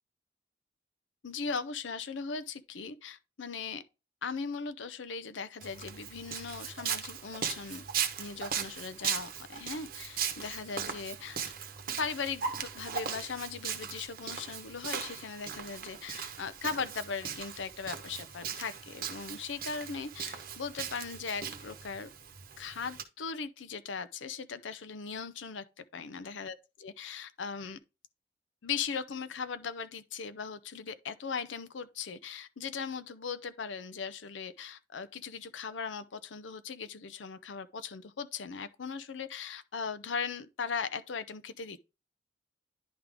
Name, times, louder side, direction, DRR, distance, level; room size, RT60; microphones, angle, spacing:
voice 1, 1.2-3.8 4.2-7.8 8.2-11.5 12.0-22.1 22.6-26.5 26.8-27.8 28.6-41.8, left 5 dB, 85° left, 0.6 m, -38 dB
Walk footsteps, 5.6-23.0, right 7 dB, 55° right, 0.9 m, -38 dB
10.5 x 3.6 x 3.4 m
head